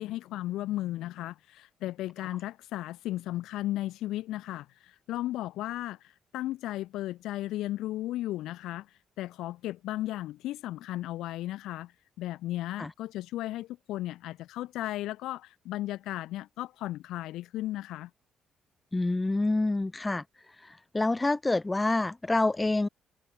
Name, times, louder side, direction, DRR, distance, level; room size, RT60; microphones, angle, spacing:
voice 1, 0.0-18.1, left 15 dB, 90° left, 1.8 m, -35 dB
voice 2, 18.9-20.2 20.9-22.9, left 2 dB, 15° left, 3.2 m, -27 dB
cardioid pair, 90°, 0 cm